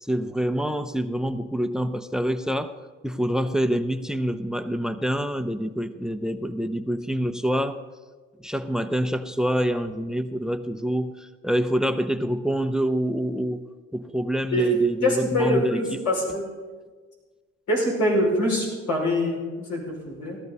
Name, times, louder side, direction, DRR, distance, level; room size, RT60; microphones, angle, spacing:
voice 1, 0.0-2.7 3.0-7.8 8.4-16.0, equal, ahead, 11 dB, 0.6 m, -26 dB
voice 2, 15.0-16.5 17.7-20.4, left 1 dB, 75° left, -3 dB, 5.6 m, -24 dB
17.0 x 13.0 x 4.1 m, 1.4 s
cardioid pair, 90°, 30 cm